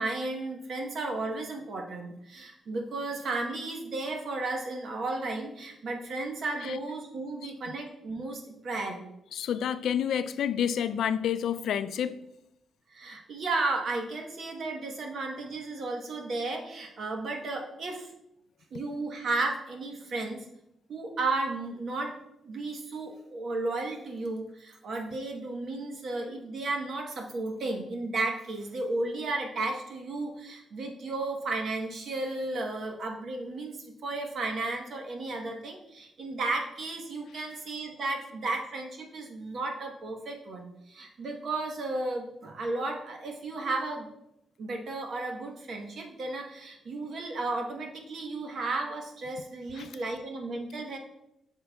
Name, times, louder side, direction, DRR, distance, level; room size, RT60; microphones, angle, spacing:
voice 1, 0.0-9.0 12.9-18.1 18.7-20.5 20.9-22.1 22.4-44.1 44.6-51.0, right 2 dB, 50° right, 1.0 m, -34 dB
voice 2, 9.3-12.2 49.8-49.9, left 9 dB, 75° left, 0.3 m, -29 dB
7.9 x 6.5 x 2.3 m
wide cardioid pair, 165°, 0 cm